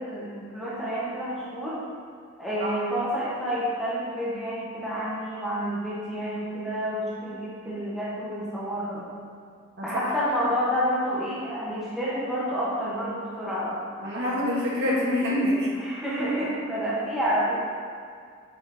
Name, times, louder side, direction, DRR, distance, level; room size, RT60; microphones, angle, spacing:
voice 1, 0.0-1.8 2.4-9.1 9.8-13.8 15.7-17.6, equal, ahead, -9 dB, 1.4 m, -29 dB
voice 2, 14.0-15.7, left 1 dB, 55° right, -6 dB, 1.9 m, -25 dB
7.8 x 4.3 x 5.1 m, 2.2 s
head